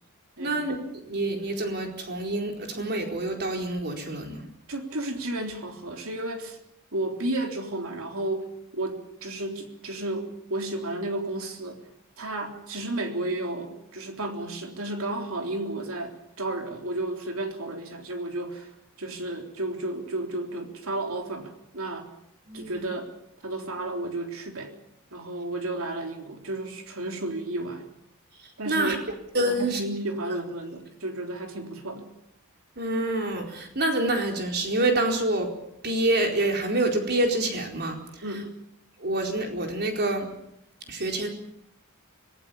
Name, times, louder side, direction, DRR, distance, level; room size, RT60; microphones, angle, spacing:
voice 1, 0.4-4.4 22.5-22.9 28.7-29.0 29.3-29.8 32.8-35.5 35.8-38.0 39.0-40.3 40.9-41.3, right 2 dB, 50° right, 2 dB, 4.4 m, -27 dB
voice 2, 4.7-6.6 6.9-8.5 8.7-11.8 12.2-18.7 19.0-22.1 22.5-23.1 23.4-24.7 25.1-27.9 28.6-29.1 29.5-32.1 38.2-38.5, right 2 dB, 70° right, 3 dB, 3.7 m, -32 dB
26.0 x 18.5 x 7.1 m, 0.81 s
head